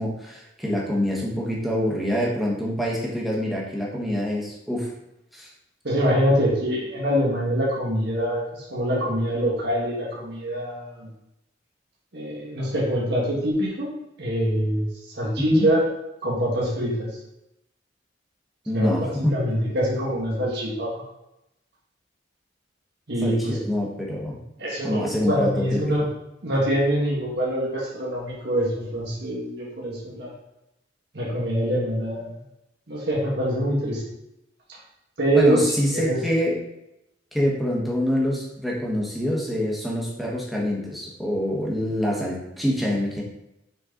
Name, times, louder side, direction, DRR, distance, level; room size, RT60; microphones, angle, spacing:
voice 1, 0.0-4.9 5.3-5.5 15.4-15.6 18.7-19.4 23.2-24.4 24.8-25.8 35.3-36.6 37.3-43.2, equal, ahead, -4 dB, 1.3 m, -25 dB
voice 2, 5.8-11.1 12.1-13.9 14.2-15.9 16.2-17.1 18.7-21.0 23.1-23.6 24.6-26.1 26.4-30.3 31.1-32.3 32.9-34.0 35.2-35.6 35.9-36.2, equal, 60° right, -5 dB, 1.8 m, -24 dB
6.4 x 4.3 x 4.0 m, 0.87 s
head